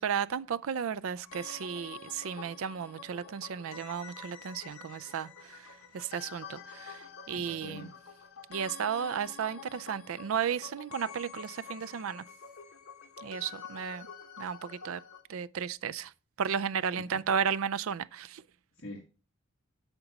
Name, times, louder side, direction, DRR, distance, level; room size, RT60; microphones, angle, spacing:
voice 1, 0.0-5.6 5.9-7.9 8.5-12.2 13.2-14.1 14.4-15.0 15.3-16.1 16.4-18.4, right 7 dB, 80° right, 0.4 m, -34 dB
sound 1, 1.2-15.2, left 6 dB, 85° left, 1.3 m, -48 dB
voice 2, 7.3-8.0 16.9-17.3 18.7-19.0, left 1 dB, 60° left, 1.5 m, -45 dB
8.9 x 5.9 x 4.1 m
head